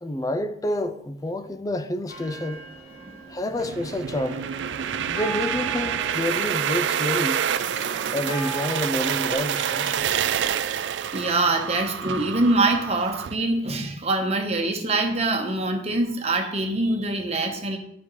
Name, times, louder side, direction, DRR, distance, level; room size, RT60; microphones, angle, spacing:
voice 1, 0.0-2.6 3.3-4.4 5.1-7.4 8.1-10.2, left 1 dB, 20° left, 0.4 m, -28 dB
sound 1, 2.1-10.5, right 3 dB, 40° left, 3.2 m, -39 dB
sound 2, 3.6-13.3, right 8 dB, 75° right, 0.4 m, -27 dB
voice 2, 11.1-17.8, right 2 dB, 35° right, 1.0 m, -24 dB
10.0 x 5.4 x 3.1 m
head